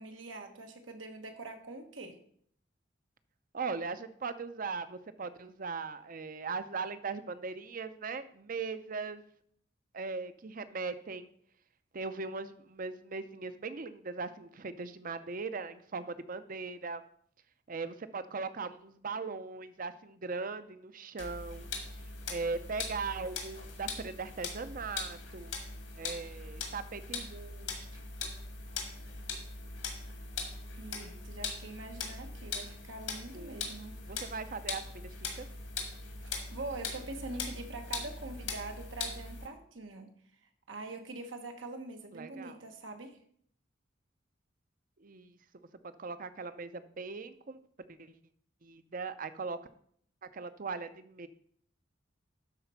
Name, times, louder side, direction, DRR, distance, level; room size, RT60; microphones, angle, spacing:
voice 1, 0.0-2.2 30.7-33.9 36.2-40.1 40.4-43.2, right 2 dB, 85° right, 5 dB, 1.3 m, -44 dB
voice 2, 3.5-9.2 9.9-11.3 11.9-17.0 17.7-21.7 22.3-25.5 26.0-27.9 33.3-33.5 34.0-35.5 42.1-42.6 45.0-45.4 46.0-47.6 48.0-48.2 48.6-49.6 50.3-51.3, right 4 dB, 45° right, 12 dB, 0.6 m, -39 dB
sound 1, 21.2-39.5, left 4 dB, 80° left, 2.1 m, -41 dB
11.5 x 4.3 x 5.7 m, 0.63 s
head